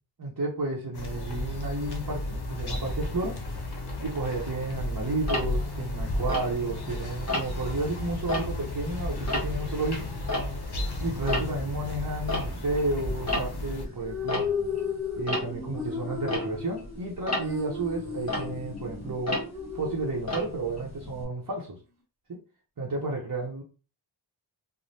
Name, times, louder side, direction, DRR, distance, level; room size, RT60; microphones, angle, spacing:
voice 1, 0.2-3.4 4.0-10.1 10.4-10.6 11.0-14.5 15.2-19.4 19.7-21.8 22.3-22.4 22.8-23.6, right 2 dB, 45° right, 0.8 m, -32 dB
sound 1, 0.9-13.9, left 1 dB, 60° left, 0.7 m, -33 dB
Tick-tock, 5.3-6.9 7.3-7.7 8.1-10.9 11.1-21.2, left 1 dB, 35° left, 1.2 m, -34 dB
sound 2, 13.8-20.9, left 6 dB, 5° right, 1.1 m, -35 dB
3.1 x 2.1 x 2.7 m
wide cardioid pair, 40°, 45 cm